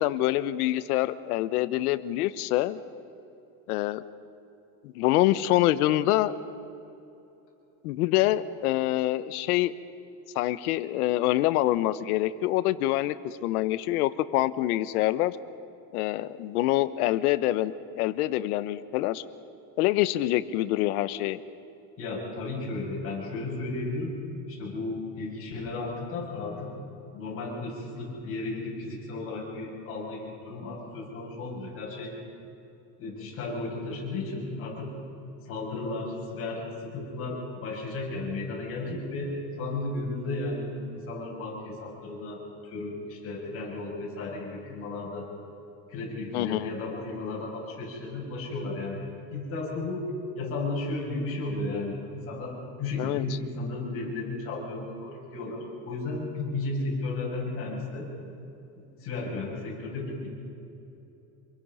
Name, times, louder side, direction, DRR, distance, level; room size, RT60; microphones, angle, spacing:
voice 1, 0.0-2.8 3.7-4.0 4.8-6.3 7.8-9.7 10.3-15.4 15.9-19.2 19.8-21.4 46.3-46.7 53.0-53.2, left 15 dB, 85° left, 14 dB, 1.1 m, -26 dB
voice 2, 22.0-24.2 24.5-26.7 27.1-32.2 33.0-34.9 35.5-45.3 45.9-49.0 49.3-50.1 50.3-58.1 58.7-60.3, left 2 dB, 30° left, -4 dB, 7.6 m, -34 dB
27.5 x 22.0 x 5.6 m, 2.8 s
cardioid pair, 170°, 44 cm